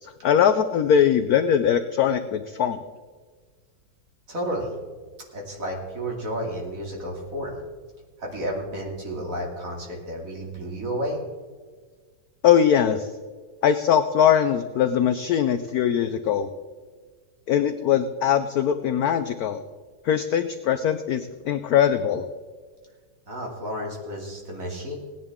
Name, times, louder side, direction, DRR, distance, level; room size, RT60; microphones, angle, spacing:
voice 1, 0.0-2.8 12.4-13.1 13.6-16.5 17.5-19.6 20.0-22.3, left 9 dB, 70° left, 10 dB, 0.9 m, -21 dB
voice 2, 4.3-4.7 5.3-7.6 8.2-11.2 23.3-25.0, equal, 40° right, -1 dB, 2.9 m, -31 dB
18.0 x 10.5 x 3.6 m, 1.5 s
omnidirectional pair, 2.1 m